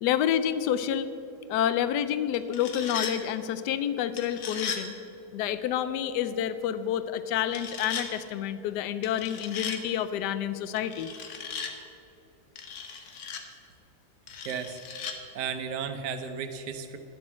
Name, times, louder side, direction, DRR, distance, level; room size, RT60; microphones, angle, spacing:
voice 1, 0.0-1.1 1.5-4.9 5.3-11.1, left 10 dB, 80° left, 13 dB, 1.2 m, -28 dB
sound 1, 2.3-3.2 4.2-4.8 7.5-8.1 9.0-9.8 10.8-11.7 12.6-13.4 14.3-15.2, left 6 dB, 65° left, 1.5 m, -37 dB
voice 2, 14.4-14.8 15.3-17.0, right 7 dB, 80° right, 7 dB, 1.4 m, -34 dB
11.0 x 7.5 x 7.4 m, 2.9 s
omnidirectional pair, 1.8 m